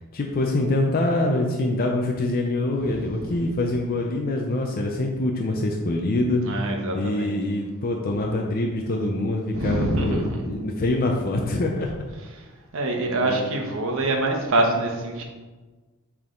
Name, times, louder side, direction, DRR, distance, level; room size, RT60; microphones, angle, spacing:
voice 1, 0.1-6.4 6.9-11.9 13.2-13.5, left 2 dB, 45° left, 1 dB, 0.5 m, -25 dB
voice 2, 2.8-3.3 6.4-7.3 9.5-10.4 12.3-12.4 12.7-15.2, right 2 dB, 65° right, 2 dB, 1.0 m, -25 dB
7.1 x 3.6 x 3.8 m, 1.3 s
head